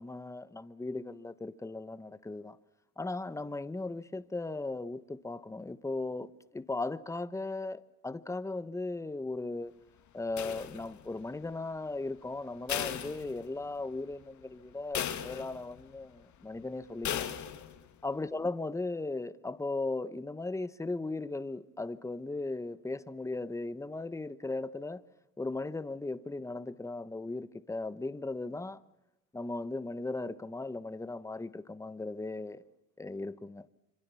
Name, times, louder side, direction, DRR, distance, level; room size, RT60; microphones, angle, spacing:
voice 1, 0.0-2.6 3.0-9.7 10.1-17.4 18.0-25.0 25.4-28.8 29.3-32.6 33.0-33.7, left 2 dB, 5° left, 1.1 m, -37 dB
sound 1, 10.4-11.2 12.7-13.8 14.2-14.3 14.9-15.8 17.0-17.8, left 10 dB, 45° left, 2.3 m, -37 dB
26.0 x 26.0 x 7.1 m
supercardioid pair, 95°, 40 cm